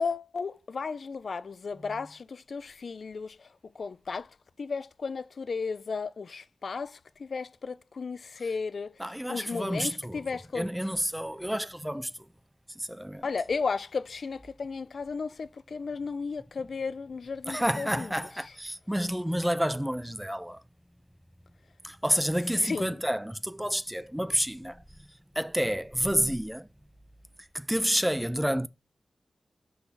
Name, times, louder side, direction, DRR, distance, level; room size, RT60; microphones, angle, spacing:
voice 1, 0.0-3.5 3.7-4.3 4.6-9.0 9.3-10.7 13.2-18.1 22.6-23.0, left 5 dB, 60° left, 0.4 m, -34 dB
voice 2, 9.0-10.3 10.5-12.3 12.7-13.3 17.5-20.6 21.8-24.8 25.4-26.7 27.4-28.7, equal, 5° right, 0.5 m, -29 dB
6.0 x 5.8 x 7.0 m
wide cardioid pair, 130°, 0 cm